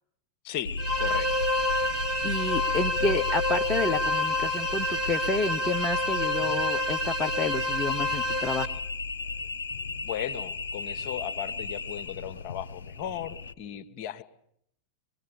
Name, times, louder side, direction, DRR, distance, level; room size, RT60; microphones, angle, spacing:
voice 1, 0.4-1.3 6.4-6.6 10.0-14.2, left 10 dB, 40° left, 11 dB, 1.4 m, -36 dB
sound 1, 0.6-13.5, left 3 dB, 65° left, 0.9 m, -34 dB
sound 2, 0.8-8.6, left 1 dB, 20° right, 2.6 m, -29 dB
voice 2, 2.2-8.8, left 3 dB, 20° left, 2 dB, 1.0 m, -30 dB
25.0 x 20.0 x 8.6 m, 0.72 s
figure-of-eight pair, 90°, 0 cm